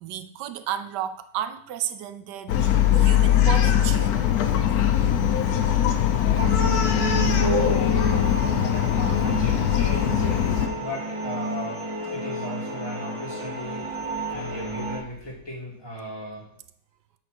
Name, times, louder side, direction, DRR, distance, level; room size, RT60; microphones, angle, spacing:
voice 1, 0.0-4.2, right 10 dB, 90° right, 1.2 m, -32 dB
Bark, 2.5-10.7, left 10 dB, 70° left, 1.2 m, -21 dB
voice 2, 5.8-6.8 7.1-7.9 8.6-16.5, right 1 dB, 15° left, 2.3 m, -35 dB
sound 1, 6.4-15.0, right 2 dB, 25° right, 0.9 m, -31 dB
7.7 x 4.1 x 6.1 m
omnidirectional pair, 1.8 m